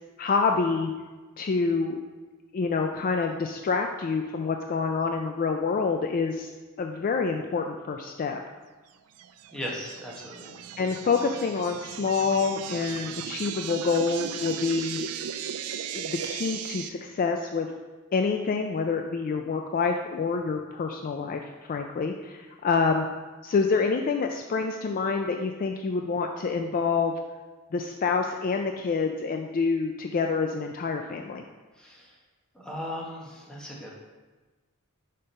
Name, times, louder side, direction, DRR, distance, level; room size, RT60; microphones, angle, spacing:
voice 1, 0.2-0.9 1.4-2.0 2.5-6.5 6.8-8.4 10.8-15.0 15.9-17.7 18.1-23.1 23.4-27.1 27.7-31.4, left 4 dB, 40° left, 4 dB, 0.3 m, -27 dB
sound 1, 9.2-16.9, right 9 dB, 80° right, 0.4 m, -37 dB
voice 2, 9.5-10.5 31.7-32.2 32.5-33.9, equal, 5° left, -4 dB, 1.2 m, -37 dB
4.9 x 4.4 x 5.3 m, 1.3 s
head